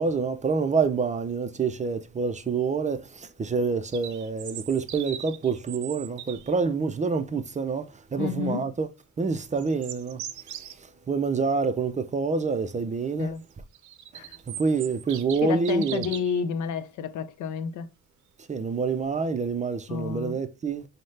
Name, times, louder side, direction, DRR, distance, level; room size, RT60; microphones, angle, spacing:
voice 1, 0.0-8.9 9.2-10.2 10.8-13.4 14.1-16.1 18.5-20.9, right 4 dB, 25° right, 0.4 m, -27 dB
sound 1, 3.9-6.5 9.4-10.8 13.5-16.4, right 10 dB, 70° right, 0.5 m, -40 dB
voice 2, 8.2-8.7 13.2-13.4 14.1-14.4 15.4-17.9 19.9-20.4, left 7 dB, 75° left, 0.5 m, -30 dB
5.3 x 2.1 x 3.2 m
cardioid pair, 90°, 30 cm